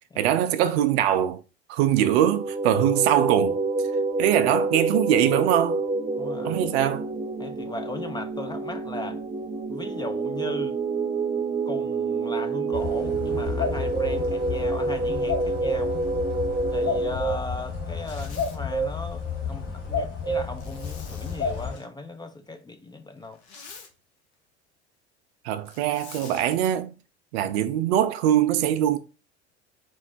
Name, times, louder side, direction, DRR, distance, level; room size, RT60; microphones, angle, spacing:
voice 1, 0.2-1.4 1.7-3.6 4.2-5.8 6.4-7.1 25.4-26.9 27.3-29.0, right 11 dB, 65° right, 0.6 m, -22 dB
sound 1, 2.2-17.2, right 3 dB, 15° right, 0.8 m, -28 dB
voice 2, 6.2-6.6 7.4-9.2 9.7-10.8 11.7-16.0 16.7-23.4, left 3 dB, 15° left, 0.4 m, -37 dB
sound 2, 12.7-21.8, left 3 dB, 40° left, 1.6 m, -30 dB
Zipper (clothing), 17.9-18.6 20.6-21.9 23.2-23.9 25.7-26.5, left 5 dB, 75° left, 0.9 m, -46 dB
4.4 x 2.0 x 4.2 m
hypercardioid pair, 70°, 33 cm